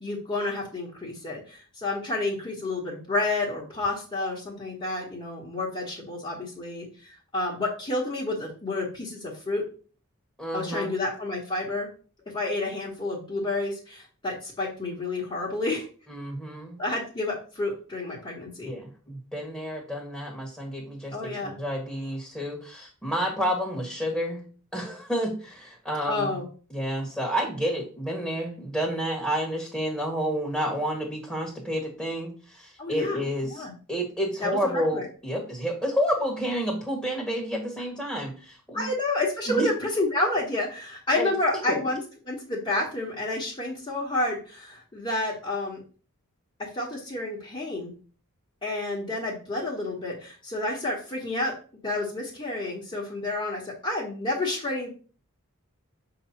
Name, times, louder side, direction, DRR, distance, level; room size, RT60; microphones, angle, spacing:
voice 1, 0.0-9.6 10.5-11.9 12.3-15.9 16.8-18.7 21.1-21.5 26.1-26.5 32.8-33.2 33.5-33.7 34.4-35.0 38.7-42.0 42.2-45.8 46.7-47.9 48.6-51.5 51.8-54.9, left 2 dB, 25° left, -5 dB, 1.4 m, -30 dB
voice 2, 10.4-10.9 16.1-16.8 18.6-24.4 24.7-26.4 26.7-38.9 39.5-39.7 41.1-41.3 41.7-41.8, equal, ahead, -1 dB, 1.5 m, -30 dB
7.1 x 2.9 x 5.7 m, 0.39 s
head